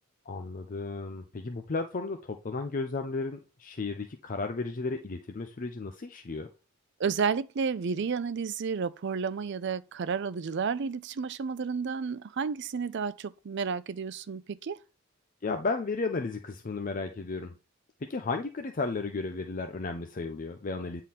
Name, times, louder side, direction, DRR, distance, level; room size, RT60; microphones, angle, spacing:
voice 1, 0.3-6.5 15.4-17.5 18.1-21.0, left 3 dB, 40° left, 0.5 m, -34 dB
voice 2, 7.0-14.8, right 5 dB, 55° right, 0.5 m, -31 dB
8.9 x 3.8 x 4.2 m
head